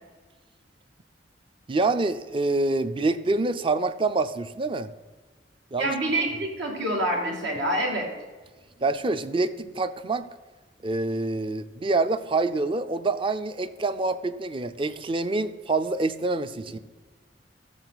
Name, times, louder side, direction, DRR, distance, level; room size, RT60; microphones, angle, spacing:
voice 1, 1.7-4.9 5.7-5.9 8.8-10.3 10.8-16.8, right 3 dB, 30° right, 12 dB, 0.5 m, -26 dB
voice 2, 5.8-8.1, right 1 dB, 80° right, 0 dB, 2.5 m, -26 dB
14.0 x 7.0 x 4.1 m, 1.3 s
head